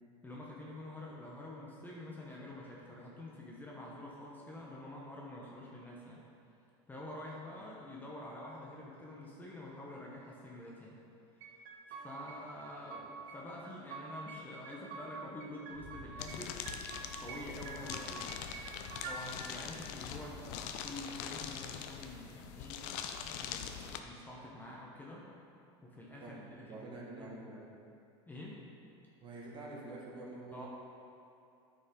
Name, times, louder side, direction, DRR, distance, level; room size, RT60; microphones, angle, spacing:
voice 1, 0.2-6.2 6.9-11.0 11.4-11.6 11.9-16.6 17.2-18.4 19.1-22.8 23.1-25.3 25.8-26.9 27.1-27.4 28.3-28.6 30.5-30.7, left 1 dB, 10° left, -4 dB, 1.0 m, -47 dB
sound 1, 11.4-12.4 12.7-13.4 13.6-15.1 15.4-16.4 16.7-17.4 17.7-19.2, right 5 dB, 60° right, 0.9 m, -46 dB
Boom, 15.7-18.7, equal, 85° left, 1.4 m, -56 dB
sound 2, 16.2-24.0, left 8 dB, 60° left, 0.6 m, -43 dB
voice 2, 26.2-27.6 29.2-30.7, right 2 dB, 35° right, -3 dB, 1.8 m, -47 dB
9.5 x 5.3 x 3.8 m, 2.7 s
supercardioid pair, 115°, 15 cm